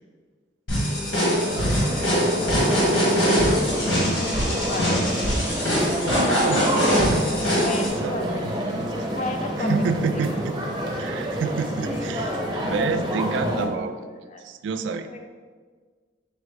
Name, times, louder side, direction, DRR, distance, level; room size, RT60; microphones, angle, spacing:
sound 1, 0.7-7.9, equal, 90° left, 1.5 m, -22 dB
sound 2, 1.4-13.6, equal, 20° right, 0.8 m, -28 dB
voice 1, 2.4-5.1 7.6-8.4 9.1-9.8 10.1-10.3 11.9-12.5 14.1-14.4 15.1-15.3, left 2 dB, 40° left, 6 dB, 0.3 m, -34 dB
voice 2, 6.4-7.3 7.8-8.9 9.6-10.6 11.0-12.3 12.6-14.1 14.4-15.1, right 5 dB, 75° right, 9 dB, 0.3 m, -29 dB
5.2 x 2.1 x 4.7 m, 1.5 s
head